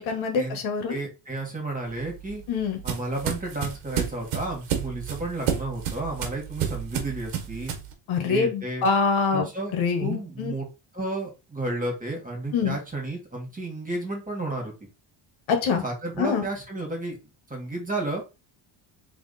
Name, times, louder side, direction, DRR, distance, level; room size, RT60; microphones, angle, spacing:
voice 1, 0.0-1.0 2.5-2.8 8.1-9.5 9.7-10.5 12.5-12.8 15.5-15.8 16.2-16.4, left 5 dB, 70° left, 5 dB, 1.4 m, -25 dB
voice 2, 0.9-2.4 2.8-7.7 8.3-8.9 9.3-9.7 10.0-10.7 10.9-14.7 15.8-17.2 17.5-18.2, right 2 dB, 15° right, 0 dB, 2.0 m, -32 dB
sound 1, 1.9-7.9, right 9 dB, 80° right, 1.4 m, -30 dB
3.5 x 3.0 x 4.1 m, 0.28 s
cardioid pair, 90°, 49 cm